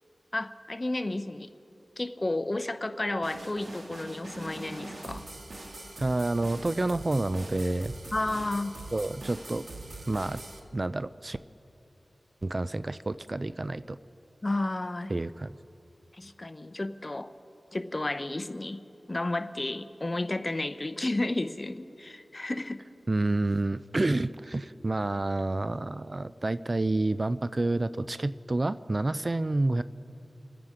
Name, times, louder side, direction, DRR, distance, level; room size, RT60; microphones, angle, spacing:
voice 1, 0.3-1.5 2.0-5.2 8.1-8.7 14.4-15.1 16.1-17.3 17.7-18.8 19.1-22.8, left 2 dB, 35° left, 11 dB, 0.7 m, -32 dB
sound 1, 3.2-10.6, right 2 dB, 60° right, 1.6 m, -43 dB
voice 2, 6.0-7.9 8.9-9.6 10.1-10.4 10.7-11.4 12.4-14.0 15.1-15.5 23.1-29.8, right 2 dB, 40° right, 15 dB, 0.4 m, -29 dB
28.0 x 9.5 x 5.0 m, 2.8 s
wide cardioid pair, 55°, 0 cm